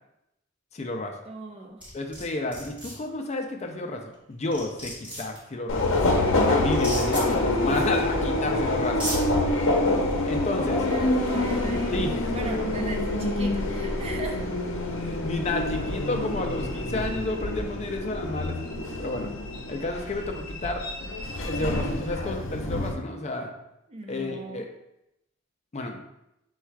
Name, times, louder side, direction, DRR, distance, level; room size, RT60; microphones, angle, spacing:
voice 1, 0.7-1.2 1.9-9.1 10.2-10.8 11.9-12.3 15.0-18.6 19.0-19.3 19.7-20.9 21.4-23.5 24.1-24.7 25.7-26.0, left 2 dB, 35° left, 3 dB, 0.4 m, -31 dB
voice 2, 1.2-1.8 10.4-12.0 12.3-14.4 23.9-24.6, right 2 dB, 30° right, 2 dB, 0.5 m, -38 dB
sound 1, 1.8-2.2 2.5-2.9 4.1-4.2 4.5-5.4 6.7-7.2 8.3-8.4 8.8-9.2, equal, 5° right, 1.6 m, -34 dB
Subway metro underground, 5.7-22.9, left 2 dB, 80° left, 0.7 m, -26 dB
4.4 x 2.3 x 4.5 m, 0.86 s
head